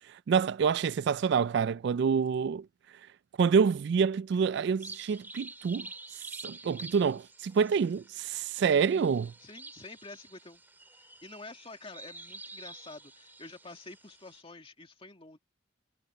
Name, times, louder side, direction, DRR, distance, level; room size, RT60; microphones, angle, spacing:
voice 1, 0.3-2.7 3.4-5.9 6.4-9.3, right 6 dB, 55° right, 0.3 m, -27 dB
sound 1, 4.8-14.4, right 2 dB, 10° right, 2.3 m, -48 dB
voice 2, 9.4-10.6 10.9-15.4, left 3 dB, 25° left, 2.4 m, -48 dB
head